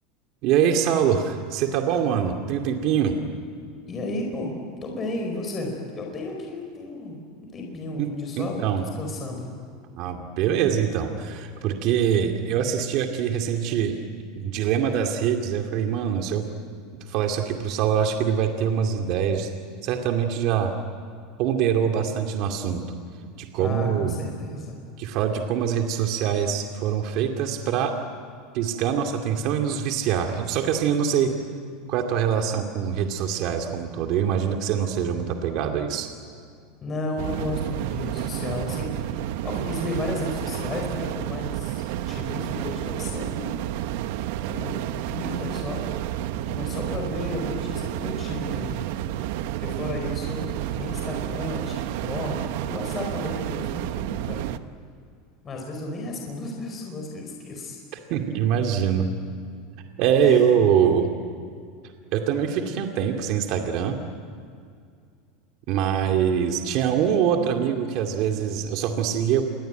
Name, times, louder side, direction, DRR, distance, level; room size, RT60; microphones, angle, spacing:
voice 1, 0.4-3.2 8.0-8.1 8.4-8.8 10.0-14.0 14.3-16.5 17.1-19.5 19.8-20.7 21.4-22.8 23.4-24.2 25.0-27.9 28.5-31.3 31.9-36.1 58.1-59.1 60.0-61.1 62.1-64.0 65.7-69.4, right 8 dB, 50° right, 4 dB, 2.5 m, -24 dB
voice 2, 3.9-4.5 4.8-8.6 8.9-9.5 23.6-24.8 36.8-43.6 44.5-45.9 46.5-48.8 49.6-54.4 55.4-57.8 60.2-60.5, left 2 dB, 25° left, 1 dB, 4.9 m, -33 dB
sound 1, 37.2-54.6, right 13 dB, 70° right, 1.1 m, -30 dB
28.5 x 23.0 x 9.2 m, 2.3 s
supercardioid pair, 150°, 0 cm